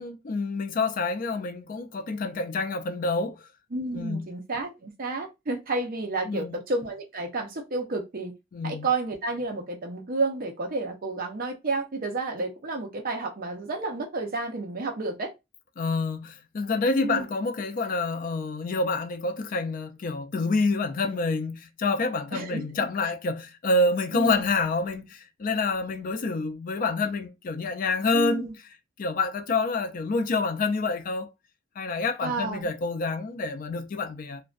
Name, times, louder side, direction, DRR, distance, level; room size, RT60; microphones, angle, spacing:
voice 1, 0.0-3.4 3.9-4.2 6.3-6.6 8.5-8.9 15.8-28.5 29.0-31.3 31.8-34.4, left 3 dB, 45° left, 0.3 m, -27 dB
voice 2, 3.7-8.3 8.6-15.3 17.0-17.3 22.3-22.9 24.1-24.5 28.1-28.6 32.2-32.7, right 3 dB, 50° right, 0.6 m, -31 dB
2.4 x 2.1 x 2.4 m
head